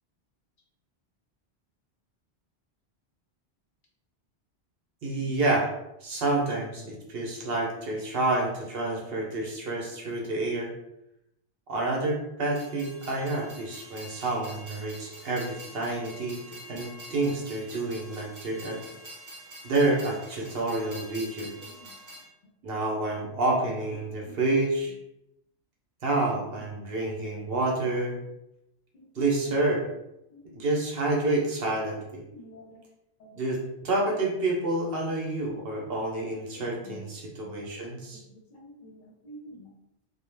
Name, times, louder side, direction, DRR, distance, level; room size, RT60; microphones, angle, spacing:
voice 1, 5.0-5.7 6.0-10.7 11.7-16.4 16.7-18.8 19.6-21.6 22.6-24.9 26.0-28.2 29.2-29.8 30.5-32.2 33.4-38.2, right 2 dB, 65° right, -1 dB, 0.8 m, -28 dB
Train, 12.5-22.2, right 1 dB, 25° right, 0.5 m, -46 dB
voice 2, 32.3-32.8 33.2-33.4 36.5-37.0 37.4-37.5 38.1-39.7, left 1 dB, 55° left, -1 dB, 0.7 m, -49 dB
2.2 x 2.1 x 3.1 m, 0.84 s
omnidirectional pair, 1.1 m